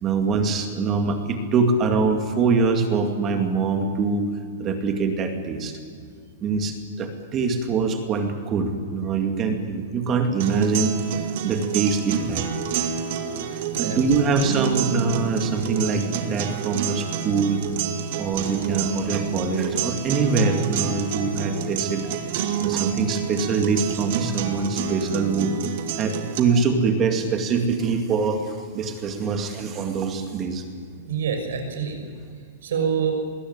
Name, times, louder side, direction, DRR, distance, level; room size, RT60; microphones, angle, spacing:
voice 1, 0.0-4.3 4.6-5.7 6.4-10.9 11.4-12.5 13.8-17.6 18.2-22.2 22.5-25.5 26.0-30.6, right 4 dB, 20° right, 5 dB, 2.3 m, -24 dB
sound 1, 10.4-26.4, right 8 dB, 50° right, 2.3 m, -28 dB
voice 2, 13.6-14.0 30.9-32.0 32.6-33.1, right 7 dB, 75° right, 5 dB, 6.2 m, -26 dB
21.0 x 17.0 x 9.7 m, 2.2 s
supercardioid pair, 160°, 0 cm